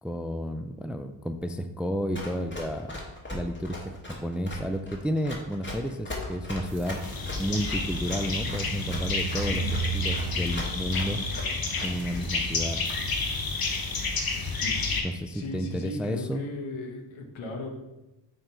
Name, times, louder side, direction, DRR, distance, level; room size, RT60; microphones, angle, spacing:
voice 1, 0.0-3.0 3.3-7.0 7.4-9.7 9.9-11.2 11.8-12.8 15.0-16.4, equal, 5° right, 8 dB, 0.3 m, -31 dB
Run, 2.1-12.2, left 2 dB, 25° left, 1.8 m, -38 dB
sound 1, 6.7-14.6, right 5 dB, 70° right, 1.2 m, -38 dB
sound 2, 7.0-15.0, left 4 dB, 50° left, 1.1 m, -30 dB
voice 2, 15.3-17.7, left 2 dB, 80° left, 3 dB, 1.2 m, -36 dB
6.4 x 3.9 x 4.4 m, 1.0 s
cardioid pair, 70°, 46 cm